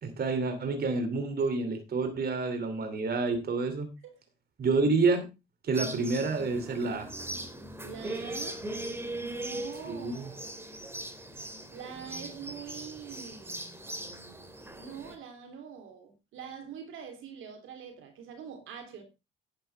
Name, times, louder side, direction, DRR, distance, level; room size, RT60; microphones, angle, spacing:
voice 1, 0.0-3.9 4.6-5.2 5.6-7.1 9.8-10.3, right 3 dB, 50° right, 2.8 m, -28 dB
sound 1, 5.7-15.2, right 1 dB, 10° right, 2.5 m, -40 dB
voice 2, 7.8-8.6 9.1-10.9 11.7-13.9 14.7-19.0, right 7 dB, 85° right, 3.3 m, -44 dB
10.5 x 10.0 x 3.4 m
cardioid pair, 90°, 20 cm